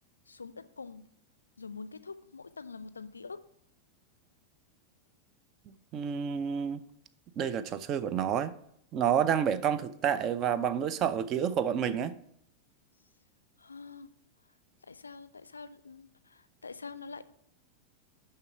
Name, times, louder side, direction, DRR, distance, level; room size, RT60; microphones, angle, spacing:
voice 1, 0.3-1.0 1.6-3.4 13.6-14.1 14.9-17.3, left 4 dB, 75° left, 0.4 m, -45 dB
voice 2, 5.7-6.8 7.4-8.5 8.9-12.1, right 8 dB, 35° right, 0.4 m, -29 dB
6.7 x 5.6 x 4.9 m
figure-of-eight pair, 90°, 0 cm